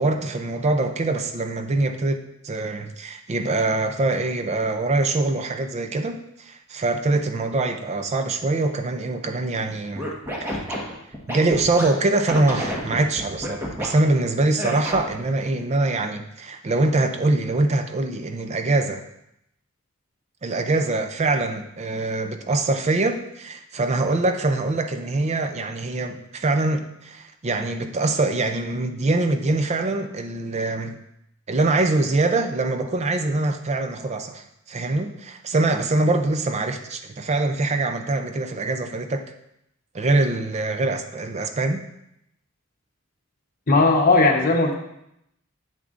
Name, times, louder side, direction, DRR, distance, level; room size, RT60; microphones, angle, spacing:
voice 1, 0.0-10.1 10.4-10.6 11.3-19.0 20.4-31.0 31.5-39.2 39.9-41.8, right 2 dB, 35° right, 7 dB, 0.4 m, -24 dB
Scratching (performance technique), 9.9-11.8 12.3-13.9 14.6-15.2, equal, 10° right, 1.3 m, -29 dB
voice 2, 43.7-44.8, left 3 dB, 45° left, 2 dB, 1.0 m, -17 dB
8.2 x 6.9 x 2.5 m, 0.80 s
head